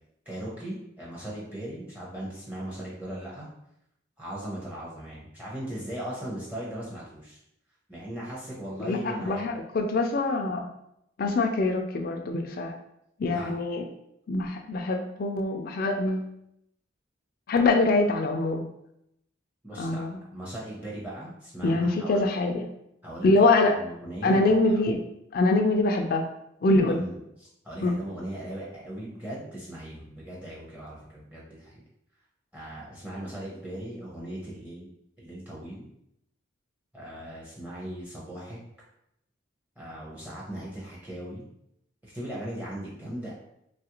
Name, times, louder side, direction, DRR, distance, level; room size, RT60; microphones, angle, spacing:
voice 1, 0.3-3.5 4.2-7.4 7.9-9.4 13.2-13.6 19.6-20.0 20.3-22.3 23.0-24.9 26.8-31.8 32.5-34.9 35.2-35.9 36.9-38.6 39.8-41.5 42.0-43.4, right 1 dB, 10° right, -6 dB, 0.6 m, -38 dB
voice 2, 8.8-10.7 11.2-12.7 13.2-13.8 14.3-16.3 17.5-18.7 19.8-20.2 21.6-22.6 23.2-23.7 24.2-25.0 25.3-26.3 26.6-27.1 27.8-27.9, left 2 dB, 45° left, 4 dB, 0.3 m, -24 dB
3.1 x 2.4 x 2.9 m, 0.79 s
head